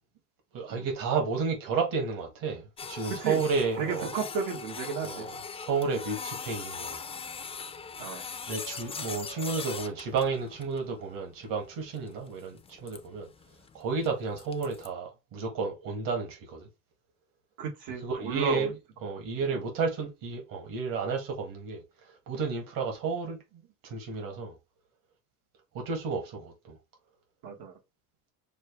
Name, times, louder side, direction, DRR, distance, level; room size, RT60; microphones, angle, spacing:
voice 1, 0.5-4.1 5.0-7.0 8.5-13.3 13.7-16.7 18.0-18.8 19.0-21.8 22.3-23.4 23.8-24.5 25.7-26.8, right 4 dB, 65° right, 1.9 m, -32 dB
Printer, 2.8-14.9, left 5 dB, 15° left, 0.4 m, -41 dB
voice 2, 3.1-3.4 3.8-5.3 8.0-8.2 17.6-18.7 19.5-19.6 27.4-27.7, right 6 dB, 85° right, 1.8 m, -33 dB
6.3 x 2.4 x 3.1 m
cardioid pair, 150°, 36 cm